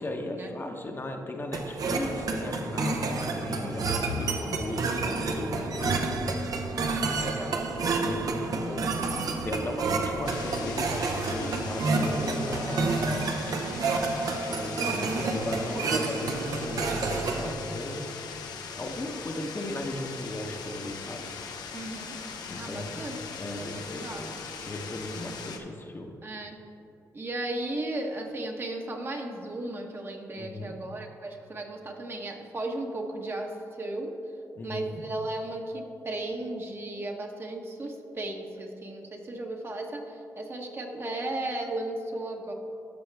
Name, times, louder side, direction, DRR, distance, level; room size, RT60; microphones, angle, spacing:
voice 1, 0.0-6.2 7.5-13.3 14.3-18.1 18.8-21.3 22.5-23.1 23.4-26.1 30.3-30.8 34.6-35.0, left 1 dB, 30° left, 3 dB, 0.9 m, -36 dB
sound 1, 1.5-17.5, right 3 dB, 65° right, 0.8 m, -29 dB
voice 2, 6.8-8.3 8.7-9.0 21.7-22.1 22.5-23.2 23.5-24.2 26.2-26.6 27.1-34.1 34.6-42.5, right 2 dB, 35° right, 2 dB, 1.1 m, -35 dB
sound 2, 10.2-25.6, left 5 dB, 80° left, 0.7 m, -40 dB
13.0 x 5.5 x 3.4 m, 2.8 s
cardioid pair, 80°, 7 cm